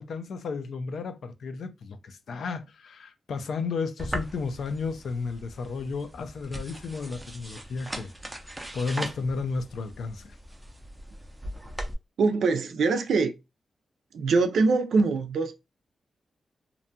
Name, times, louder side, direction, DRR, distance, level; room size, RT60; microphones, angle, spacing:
voice 1, 0.0-8.1 8.7-10.4, left 4 dB, 70° left, 0.4 m, -33 dB
sound 1, 4.0-11.9, right 1 dB, 10° right, 0.4 m, -39 dB
voice 2, 12.2-13.3 14.1-15.6, right 4 dB, 90° right, 0.4 m, -23 dB
2.5 x 2.2 x 2.6 m
wide cardioid pair, 175°, 0 cm